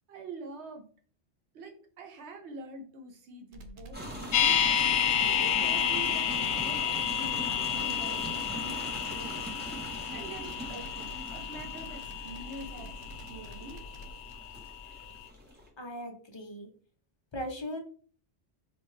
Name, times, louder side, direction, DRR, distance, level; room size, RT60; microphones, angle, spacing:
voice 1, 0.1-0.9 1.5-4.6 5.0-9.4 9.8-13.0 13.2-13.8, right 2 dB, 85° right, 3 dB, 1.1 m, -45 dB
sound 1, 3.5-14.1, equal, 60° right, 0.7 m, -48 dB
sound 2, 3.9-15.7, right 1 dB, 10° right, 0.7 m, -41 dB
sound 3, 4.3-14.4 14.7-14.8, left 9 dB, 85° left, 0.8 m, -30 dB
voice 2, 15.8-16.7 17.3-17.8, equal, 30° left, 3 dB, 0.5 m, -38 dB
4.3 x 2.2 x 3.1 m, 0.43 s
omnidirectional pair, 1.1 m